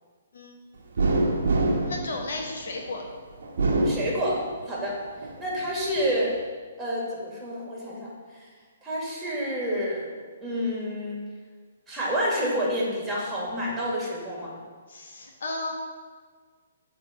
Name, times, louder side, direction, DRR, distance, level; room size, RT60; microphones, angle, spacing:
sound 1, 1.0-2.9 3.4-4.8 5.2-6.1, right 2 dB, 65° right, 1.1 m, -26 dB
voice 1, 1.9-3.0 14.9-15.7, left 2 dB, 60° left, 1 dB, 1.3 m, -34 dB
voice 2, 3.8-5.0 5.4-6.3 6.8-8.4 8.8-10.1 10.4-11.2 11.9-14.5, equal, 10° right, -5 dB, 2.3 m, -29 dB
7.8 x 3.3 x 5.9 m, 1.5 s
figure-of-eight pair, 130°, 0 cm